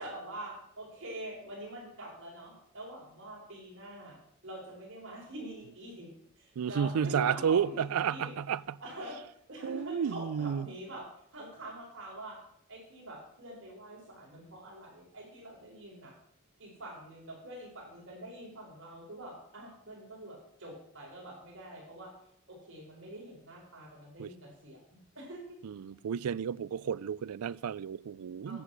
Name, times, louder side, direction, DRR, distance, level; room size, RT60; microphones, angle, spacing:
voice 1, 0.0-8.3 8.8-12.4 12.7-16.1 16.6-22.1 22.5-25.6 28.4-28.6, right 1 dB, 55° right, 4.4 m, -45 dB
voice 2, 6.6-8.6 9.6-10.7 24.2-24.3 25.6-28.6, right 7 dB, 80° right, 0.4 m, -31 dB
10.5 x 8.3 x 6.1 m
head